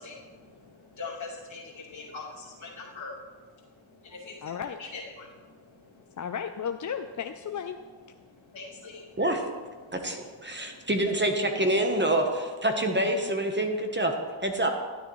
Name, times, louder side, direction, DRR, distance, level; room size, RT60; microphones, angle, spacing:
voice 1, 0.0-6.3 8.1-11.1, left 3 dB, 70° left, -4 dB, 2.5 m, -44 dB
voice 2, 4.4-4.8 6.2-7.8, left 7 dB, 40° left, 6 dB, 0.4 m, -34 dB
voice 3, 9.2-9.5 9.9-14.1 14.4-14.7, right 1 dB, 20° right, 4 dB, 0.9 m, -26 dB
12.0 x 9.6 x 3.1 m, 1.5 s
wide cardioid pair, 105°, 49 cm